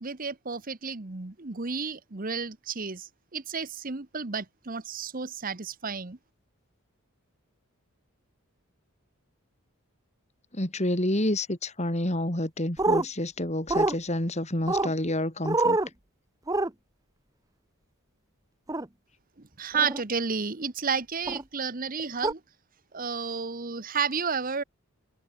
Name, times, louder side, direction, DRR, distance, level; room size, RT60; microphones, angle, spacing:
voice 1, 0.0-3.1 3.3-6.2 19.6-22.4 22.9-24.6, right 5 dB, 40° right, 1.1 m, -31 dB
voice 2, 10.5-15.8, left 1 dB, 30° left, 3.0 m, -28 dB
sound 1, 12.8-13.1 13.7-13.9 14.7-14.9 15.5-15.9 16.5-16.7 18.7-18.9 19.7-20.0 21.3-21.4 22.2-22.3, right 2 dB, 15° right, 0.9 m, -25 dB
head